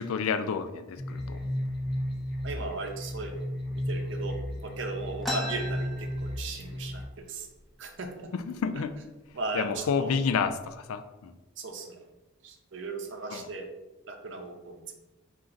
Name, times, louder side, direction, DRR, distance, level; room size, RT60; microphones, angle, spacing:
voice 1, 0.0-1.5 8.3-8.9 9.5-11.3 13.3-13.5, left 6 dB, 80° left, 11 dB, 0.3 m, -30 dB
sound 1, 1.0-7.0, equal, 45° left, 0.7 m, -34 dB
voice 2, 2.4-3.4 3.9-4.4 4.6-7.5 7.8-8.3 9.3-10.1 11.6-12.0 12.4-13.7 14.1-14.8, right 3 dB, 60° right, 4 dB, 0.6 m, -37 dB
sound 2, 5.2-6.8 7.2-7.3 7.5-8.2 8.8-8.9 9.6-9.8 10.3-10.7, left 1 dB, ahead, 0.4 m, -37 dB
4.3 x 2.5 x 3.8 m, 1.0 s
head